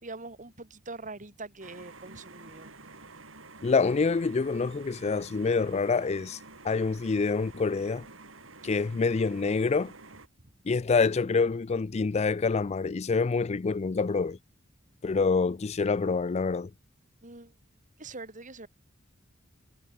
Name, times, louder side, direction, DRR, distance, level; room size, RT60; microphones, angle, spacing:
voice 1, 0.0-2.7 8.6-8.9 17.2-17.5 18.0-18.7, right 3 dB, 40° right, 3.1 m, -43 dB
sound 1, 1.6-10.3, right 3 dB, 80° right, 7.9 m, -49 dB
voice 2, 3.6-6.4 6.6-8.1 8.6-9.9 10.7-14.4 15.0-16.7, left 4 dB, 35° left, 0.4 m, -26 dB
head